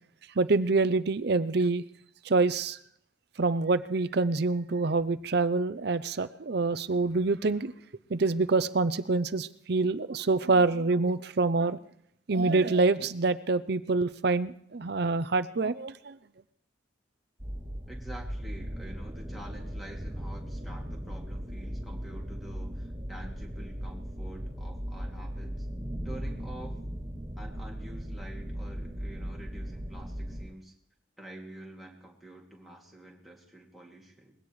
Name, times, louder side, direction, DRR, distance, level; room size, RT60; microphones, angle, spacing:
voice 1, 0.4-1.8 2.3-2.8 3.4-7.7 8.1-11.8 12.3-16.2, right 3 dB, 55° right, 0.6 m, -26 dB
sound 1, 17.4-30.4, equal, 30° right, 2.8 m, -38 dB
voice 2, 17.9-25.7 26.0-26.8 27.4-30.7 31.2-34.3, right 1 dB, ahead, 2.5 m, -48 dB
21.5 x 17.0 x 3.2 m
head